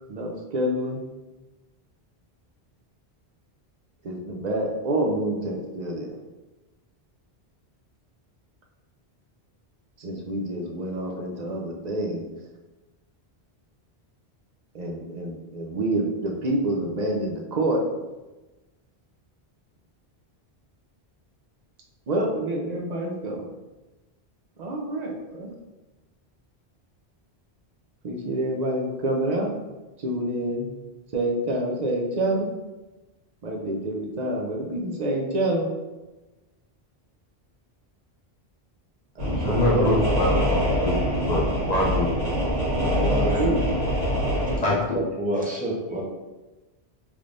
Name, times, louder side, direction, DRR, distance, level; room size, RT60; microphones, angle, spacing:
voice 1, 0.1-1.0 4.0-6.1 10.0-12.3 14.7-17.8 22.1-23.5 24.6-25.5 28.0-29.5 30.0-30.7 31.1-32.5 33.4-35.7 39.2-39.9 42.7-43.6, right 1 dB, 50° right, 0 dB, 0.6 m, -27 dB
sound 1, 39.2-44.6, equal, 80° right, 1.5 m, -24 dB
voice 2, 39.4-42.1 44.6-44.8, left 1 dB, 45° left, -5 dB, 0.7 m, -25 dB
voice 3, 44.3-46.0, right 1 dB, 10° right, -5 dB, 0.6 m, -30 dB
3.4 x 3.1 x 2.5 m, 1.1 s
omnidirectional pair, 1.1 m